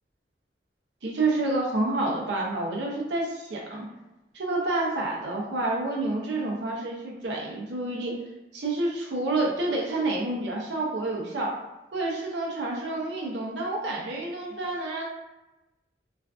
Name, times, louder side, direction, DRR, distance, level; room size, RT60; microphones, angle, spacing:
voice 1, 1.0-3.9 4.3-8.2 8.5-11.5 11.9-15.1, right 2 dB, 85° right, -2 dB, 0.5 m, -28 dB
2.4 x 2.3 x 2.3 m, 1.0 s
head